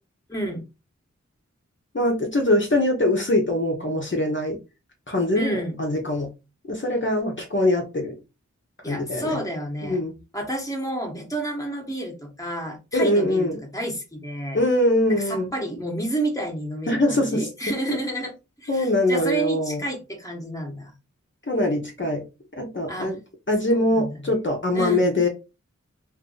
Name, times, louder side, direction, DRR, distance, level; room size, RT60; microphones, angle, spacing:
voice 1, 0.3-0.6 5.3-5.8 8.8-10.0 10.3-14.6 15.2-20.9 22.9-23.1 23.7-24.3 24.7-25.1, right 1 dB, 10° left, 1.1 m, -30 dB
voice 2, 1.9-4.6 5.1-6.3 6.7-8.1 8.8-9.4 9.8-10.1 12.9-13.6 14.5-15.5 16.9-17.5 18.7-19.8 21.5-22.2 22.6-23.2 23.5-25.3, left 1 dB, 40° left, 0.8 m, -22 dB
2.7 x 2.5 x 3.8 m
wide cardioid pair, 50°, 29 cm